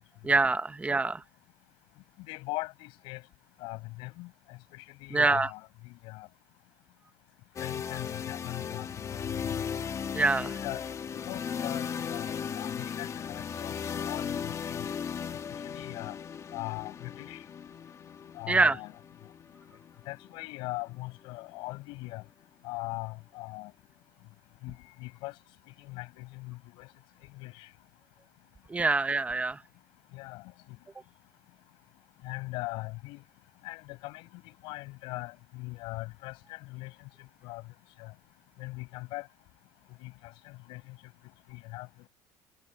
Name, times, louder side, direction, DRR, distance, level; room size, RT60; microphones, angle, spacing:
voice 1, 0.2-1.2 5.1-5.5 10.1-10.6 18.5-18.8 28.7-29.6, right 3 dB, 15° right, 1.3 m, -25 dB
voice 2, 2.3-3.2 3.6-6.3 7.6-9.8 10.3-10.8 11.1-14.6 15.6-16.2 16.5-17.4 18.3-18.9 20.1-22.2 22.6-23.7 24.6-25.3 25.8-26.9 27.3-27.7 30.1-30.4 32.2-33.2 33.6-34.3 34.6-36.9 37.4-37.6 38.0-38.1 38.6-39.3 40.0-41.0 41.5-41.9, left 22 dB, 80° left, 7.3 m, -40 dB
sound 1, 7.6-21.4, left 7 dB, 35° left, 2.2 m, -37 dB
cardioid pair, 105°, 8 cm